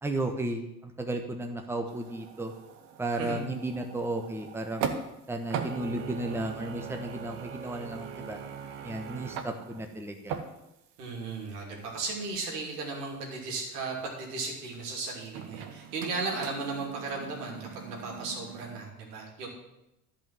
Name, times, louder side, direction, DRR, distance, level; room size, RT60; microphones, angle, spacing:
voice 1, 0.0-2.5 3.0-4.9 5.3-8.4 8.8-10.4, right 2 dB, 5° right, 4 dB, 1.2 m, -34 dB
sound 1, 1.9-5.2 5.5-11.0 11.3-11.4 15.3-18.8, right 7 dB, 60° right, 1.3 m, -40 dB
voice 2, 11.0-19.5, right 3 dB, 80° right, 0 dB, 3.1 m, -36 dB
11.0 x 5.6 x 7.6 m, 0.90 s
hypercardioid pair, 80°, 46 cm